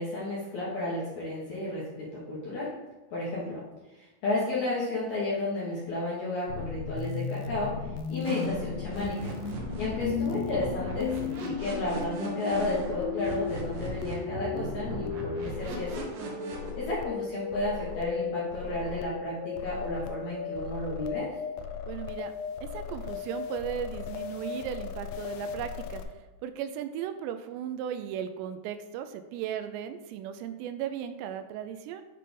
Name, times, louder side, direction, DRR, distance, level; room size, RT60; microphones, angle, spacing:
voice 1, 0.0-2.7 3.1-3.6 3.9-7.7 8.1-9.3 9.8-16.1 16.8-21.3, left 2 dB, 65° left, -7 dB, 1.9 m, -32 dB
sound 1, 6.5-26.0, left 7 dB, 90° left, 2.8 m, -36 dB
sound 2, 8.2-16.7, right 3 dB, 65° right, 2.5 m, -38 dB
voice 2, 21.9-22.3 22.6-26.0 26.4-32.0, right 9 dB, 85° right, 9 dB, 2.8 m, -36 dB
8.4 x 3.3 x 5.1 m, 1.1 s
omnidirectional pair, 4.9 m